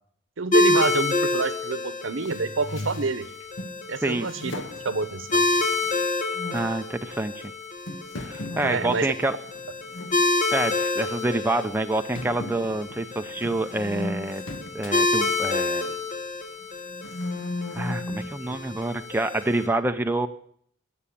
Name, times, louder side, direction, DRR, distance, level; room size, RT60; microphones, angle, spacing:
voice 1, 0.4-3.2 3.9-5.5 8.6-9.1, right 3 dB, 75° right, 13 dB, 0.9 m, -28 dB
sound 1, 0.5-19.7, left 2 dB, 40° left, 1.3 m, -28 dB
sound 2, 2.2-3.8 4.2-6.0 6.3-6.7 7.3-7.4 7.9-10.2 10.5-10.8 11.2-11.3 12.1-16.1 16.6-18.3, left 1 dB, 80° left, 1.7 m, -36 dB
voice 2, 6.5-7.5 8.2-9.4 10.5-14.4 14.7-15.9 17.7-20.3, right 2 dB, 10° right, 6 dB, 0.5 m, -27 dB
17.5 x 7.0 x 8.5 m, 0.64 s
head